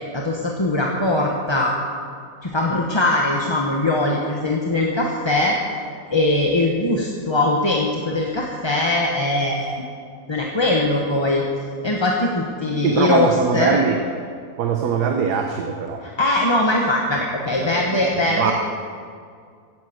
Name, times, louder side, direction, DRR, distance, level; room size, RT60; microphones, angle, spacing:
voice 1, 0.1-1.7 2.4-5.6 6.1-9.8 10.3-11.4 11.8-13.8 16.0-18.5, left 2 dB, 20° left, -1 dB, 1.0 m, -21 dB
voice 2, 12.8-14.0 14.6-16.0 17.6-18.5, right 6 dB, 75° right, 3 dB, 1.5 m, -22 dB
16.5 x 9.4 x 7.8 m, 2.2 s
omnidirectional pair, 1.8 m